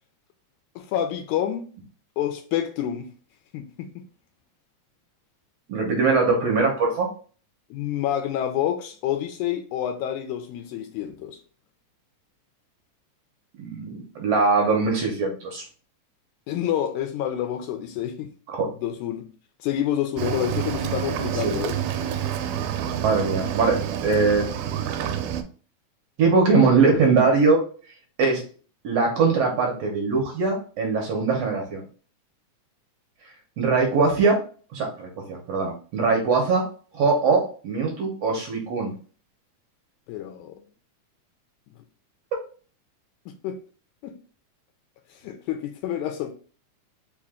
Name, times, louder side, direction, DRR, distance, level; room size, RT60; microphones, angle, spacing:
voice 1, 0.8-1.7 2.2-3.1 3.5-4.0 7.7-11.4 16.5-18.3 18.8-19.3 19.6-21.8 40.1-40.6 43.3-43.6 44.0-44.2 45.1-46.3, left 10 dB, 80° left, 1.8 m, -28 dB
voice 2, 5.7-7.1 13.6-13.9 14.2-15.6 18.5-18.7 21.4-21.5 23.0-24.5 26.2-27.6 28.2-28.4 28.8-31.8 33.6-34.4 34.7-36.6 36.9-38.9, right 4 dB, 65° right, 1.8 m, -21 dB
Cricket / Waves surf, 20.2-25.4, right 9 dB, 80° right, 2.0 m, -28 dB
5.0 x 2.5 x 3.5 m
omnidirectional pair, 3.6 m